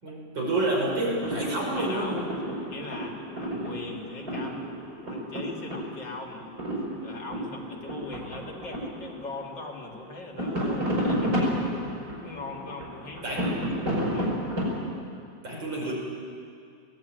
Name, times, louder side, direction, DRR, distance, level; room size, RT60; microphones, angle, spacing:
voice 1, 0.0-2.3 13.2-13.5 15.4-15.9, right 2 dB, 85° right, -2 dB, 5.8 m, -29 dB
sound 1, 0.8-9.6 9.9-14.8, equal, 60° right, 5.8 m, -31 dB
voice 2, 1.8-2.2 2.7-4.8 5.1-6.5 7.0-11.5 12.2-13.5 14.0-14.4 15.5-15.6, left 3 dB, 70° left, 0 dB, 3.2 m, -40 dB
21.0 x 18.0 x 8.9 m, 2.3 s
omnidirectional pair, 2.0 m